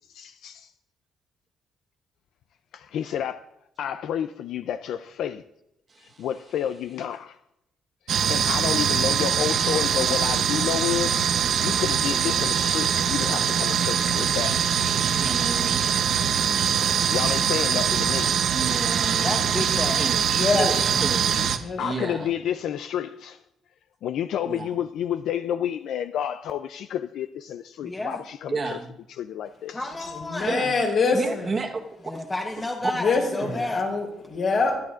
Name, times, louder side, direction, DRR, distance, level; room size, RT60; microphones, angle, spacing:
voice 1, 0.1-0.7 2.7-3.3 3.8-5.4 6.0-7.4 8.1-14.6 15.9-16.3 17.1-18.3 21.8-23.4 24.0-28.8 29.2-30.1, left 9 dB, 70° left, 0.4 m, -30 dB
voice 2, 5.9-6.3 15.1-15.9 18.5-19.4 19.8-20.2 20.8-22.3 24.4-24.8 28.5-28.9 30.5-30.7 31.1-32.1 32.8-32.9 33.4-33.6, right 3 dB, 30° right, 1.2 m, -32 dB
sound 1, 8.1-21.6, right 8 dB, 60° right, 0.8 m, -23 dB
voice 3, 19.2-20.0 20.6-20.8 27.8-28.2 29.7-30.6 32.0-33.8, left 2 dB, 15° left, 1.0 m, -31 dB
voice 4, 20.3-20.7 21.6-21.8 22.1-22.3 30.1-31.5 33.0-34.8, left 4 dB, 50° left, 3.8 m, -25 dB
23.0 x 11.0 x 2.5 m
cardioid pair, 155°, 0 cm